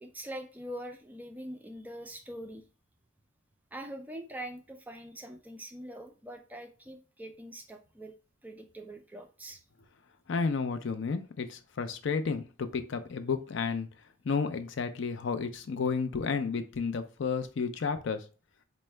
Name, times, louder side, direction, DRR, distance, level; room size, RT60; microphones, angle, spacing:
voice 1, 0.0-2.6 3.7-8.1 8.4-9.6, right 1 dB, 10° right, 5 dB, 0.3 m, -43 dB
voice 2, 10.3-13.9 14.3-18.2, left 5 dB, 60° left, 8 dB, 0.4 m, -32 dB
4.5 x 2.0 x 3.2 m, 0.35 s
head